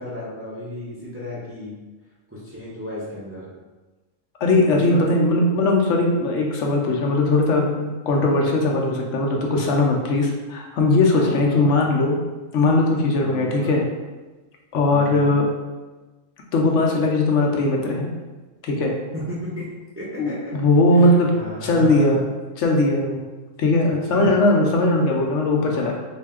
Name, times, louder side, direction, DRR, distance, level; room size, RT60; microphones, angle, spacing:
voice 1, 0.0-1.7 2.3-3.5 4.9-5.0 11.1-11.6 13.2-13.8 14.9-15.3 19.1-19.6 20.0-20.5 20.9-22.2 24.1-24.3 25.6-25.9, left 1 dB, 15° right, -7 dB, 0.5 m, -34 dB
voice 2, 4.4-12.2 12.5-13.8 14.7-15.5 16.5-18.1 18.6-18.9 20.2-21.3 21.6-22.2 22.6-23.2 23.6-25.9, left 2 dB, 75° left, 0 dB, 0.9 m, -19 dB
3.2 x 2.7 x 3.5 m, 1.2 s
omnidirectional pair, 1.3 m